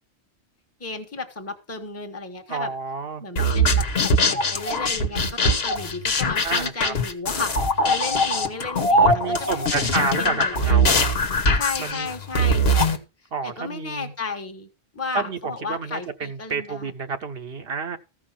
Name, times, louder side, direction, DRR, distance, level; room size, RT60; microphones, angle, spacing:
voice 1, 0.8-2.7 3.2-9.1 9.4-10.9 11.5-13.0 13.4-14.7 14.9-16.9, left 3 dB, 15° left, 1.2 m, -33 dB
voice 2, 2.5-3.2 6.4-6.9 9.0-11.0 11.8-12.1 13.3-14.1 15.1-15.4 15.7-18.0, right 5 dB, 65° right, 1.0 m, -29 dB
sound 1, 3.4-13.0, equal, 65° left, 1.4 m, -21 dB
14.5 x 4.9 x 5.8 m
omnidirectional pair, 1.1 m